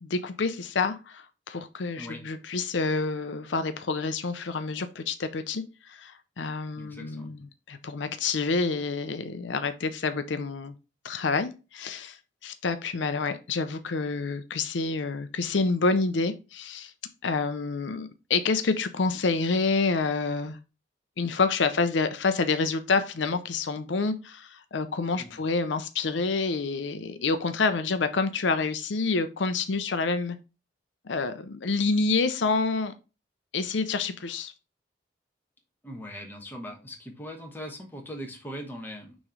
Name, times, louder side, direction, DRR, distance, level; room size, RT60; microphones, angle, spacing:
voice 1, 0.0-10.7 11.0-16.9 17.2-20.6 21.2-30.4 31.0-32.9 33.5-34.5, left 4 dB, 80° left, 10 dB, 0.6 m, -28 dB
voice 2, 6.7-7.5 25.2-25.3 35.8-39.2, equal, 10° left, 1 dB, 1.2 m, -40 dB
6.3 x 3.1 x 4.9 m, 0.30 s
head